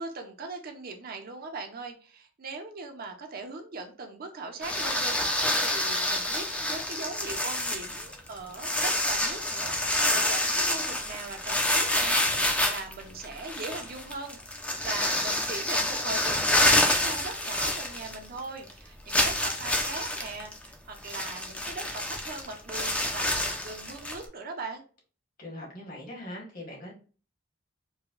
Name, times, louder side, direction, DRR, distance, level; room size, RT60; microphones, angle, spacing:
voice 1, 0.0-24.8, right 3 dB, 50° right, 4 dB, 0.6 m, -40 dB
sound 1, 4.6-18.4 18.7-18.8 19.1-24.3, left 1 dB, 5° left, 0.4 m, -27 dB
voice 2, 25.4-26.9, left 1 dB, 45° left, -1 dB, 1.2 m, -41 dB
4.7 x 2.1 x 2.4 m, 0.38 s
head